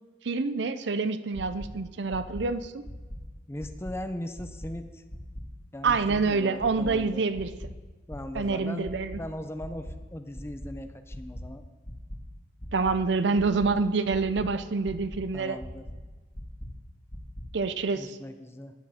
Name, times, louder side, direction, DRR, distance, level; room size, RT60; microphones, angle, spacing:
voice 1, 0.2-2.8 5.8-7.5 8.3-9.2 12.7-15.6 17.5-18.2, right 4 dB, 70° right, 12 dB, 0.6 m, -27 dB
sound 1, 1.3-1.7 2.1-2.4 2.8-3.2 3.6-3.9 4.3-4.7 5.1-5.4 5.8-6.2 6.6-6.9 7.3-7.7 8.1-8.4 8.8-9.2 9.6-9.9 10.3-10.7 11.1-11.4 11.8-12.2 12.6-12.9 13.3-13.7 14.1-14.4 14.8-15.2 15.6-15.9 16.3-16.7 17.1-17.4, equal, 30° left, 2.1 m, -40 dB
voice 2, 3.5-5.0 5.7-7.2 8.1-8.9 9.2-11.6 15.3-15.9 17.9-18.7, left 1 dB, 15° left, 8 dB, 0.7 m, -39 dB
15.0 x 9.9 x 4.3 m, 1.3 s
head